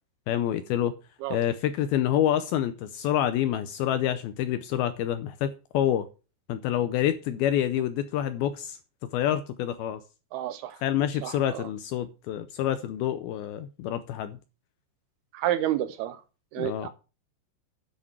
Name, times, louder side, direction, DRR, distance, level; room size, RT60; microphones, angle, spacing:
voice 1, 0.3-1.0 1.3-6.1 6.5-8.8 9.1-10.0 10.8-14.4 16.6-16.9, left 11 dB, 80° left, 2.2 m, -27 dB
voice 2, 10.3-10.8 11.2-11.3 15.3-16.2 16.5-16.9, right 12 dB, 80° right, 2.5 m, -29 dB
10.5 x 6.6 x 6.0 m
omnidirectional pair, 4.9 m